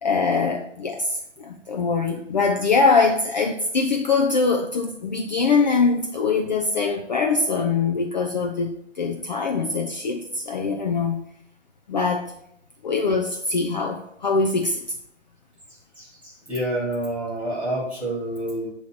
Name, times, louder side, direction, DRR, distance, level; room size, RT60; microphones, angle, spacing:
voice 1, 0.0-11.2 11.9-12.3 12.8-14.8, left 4 dB, 40° left, 2 dB, 0.5 m, -23 dB
voice 2, 16.0-18.7, right 1 dB, 5° right, -7 dB, 1.3 m, -28 dB
7.6 x 3.1 x 5.7 m, 0.73 s
hypercardioid pair, 155°, 37 cm